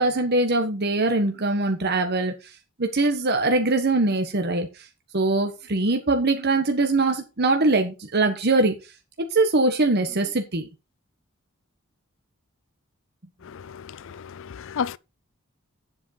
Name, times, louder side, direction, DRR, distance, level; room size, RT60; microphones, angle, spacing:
voice 1, 0.0-2.3 2.8-4.7 5.1-8.8 9.3-10.7, right 2 dB, 50° right, 1.2 m, -22 dB
voice 2, 13.4-15.0, left 7 dB, 65° left, 0.4 m, -33 dB
9.3 x 7.7 x 4.3 m
head